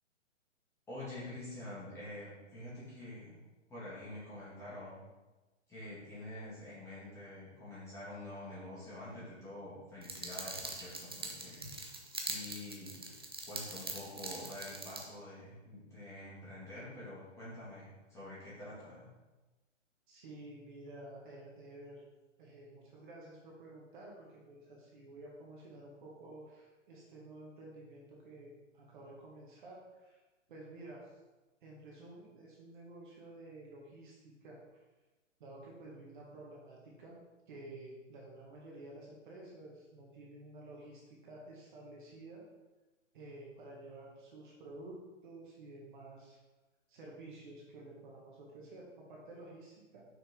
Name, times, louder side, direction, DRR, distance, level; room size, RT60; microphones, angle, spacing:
voice 1, 0.9-3.4 3.7-5.0 5.7-13.0 13.5-19.1, left 1 dB, 5° left, -10 dB, 2.4 m, -47 dB
fire crackling loop, 10.0-15.0, right 2 dB, 20° right, 0.4 m, -43 dB
voice 2, 20.1-22.0 22.4-30.2 30.5-31.2 31.6-34.8 35.4-37.2 37.5-42.4 43.1-46.4 46.9-50.0, right 2 dB, 40° right, -3 dB, 1.8 m, -51 dB
6.3 x 6.1 x 4.6 m, 1.2 s
hypercardioid pair, 165°, 38 cm